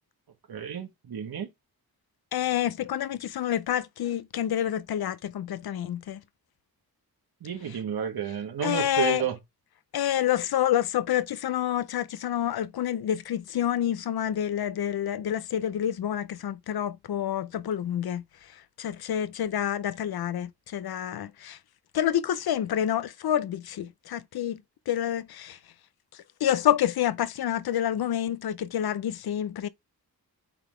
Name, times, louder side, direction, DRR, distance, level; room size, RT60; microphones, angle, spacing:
voice 1, 0.5-1.5 7.4-9.4, right 9 dB, 75° right, 1.9 m, -31 dB
voice 2, 2.3-6.2 8.6-9.2 9.9-18.2 18.5-21.6 21.9-24.6 24.9-25.6 26.1-29.7, left 10 dB, 75° left, 0.6 m, -28 dB
8.3 x 3.9 x 3.2 m
wide cardioid pair, 165°, 37 cm